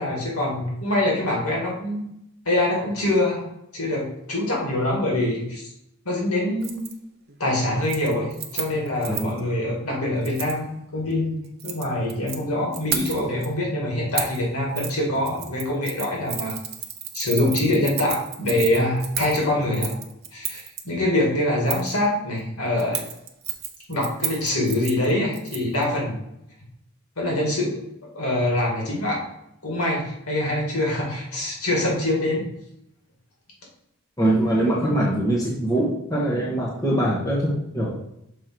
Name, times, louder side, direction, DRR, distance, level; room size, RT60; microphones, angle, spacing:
voice 1, 0.0-2.0 2.5-3.5 3.7-5.6 6.1-6.9 7.4-16.6 17.1-20.0 20.3-23.0 23.9-26.2 27.2-27.8 28.1-29.2 29.6-32.4, left 1 dB, 85° left, -3 dB, 2.0 m, -24 dB
Keys jangling, 6.6-6.9 7.3-7.6 7.8-9.4 10.2-10.6 11.4-12.4 12.7-13.5 14.2-14.4 14.8-14.9 15.2-20.8 21.7-22.0 22.8-25.8 26.1-26.2, right 9 dB, 45° right, 0.6 m, -32 dB
voice 2, 34.2-37.9, right 1 dB, 15° left, -6 dB, 1.1 m, -23 dB
6.4 x 3.7 x 4.5 m, 0.81 s
head